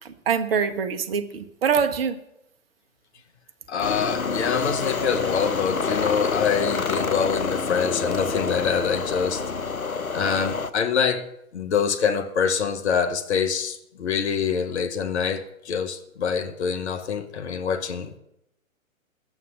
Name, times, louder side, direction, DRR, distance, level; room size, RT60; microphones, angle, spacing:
voice 1, 0.0-2.2, right 6 dB, 45° right, 10 dB, 1.1 m, -24 dB
voice 2, 3.7-9.7 10.1-11.3 11.5-18.1, left 6 dB, 55° left, 10 dB, 1.1 m, -25 dB
sound 1, 3.8-10.7, left 4 dB, 85° left, 0.9 m, -27 dB
11.0 x 8.5 x 8.2 m, 0.82 s
figure-of-eight pair, 125°, 41 cm